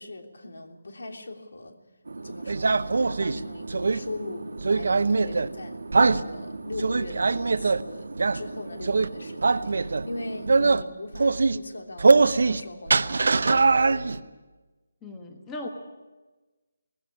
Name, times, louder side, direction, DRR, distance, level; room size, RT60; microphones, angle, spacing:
voice 1, 0.0-1.8 2.2-14.3, left 2 dB, 75° left, 4 dB, 3.2 m, -40 dB
sound 1, 2.0-10.6, right 3 dB, 90° right, 1.8 m, -39 dB
sound 2, 2.5-4.0 4.6-5.5 5.9-6.2 6.7-7.8 8.2-8.4 8.8-9.1 9.4-10.1 10.5-10.8 11.1-11.6 12.0-12.6 12.9-14.2, right 4 dB, 60° right, 0.8 m, -22 dB
voice 2, 15.0-15.7, left 2 dB, 10° left, 2 dB, 1.3 m, -37 dB
19.5 x 16.0 x 9.7 m, 1.2 s
hypercardioid pair, 175°, 0 cm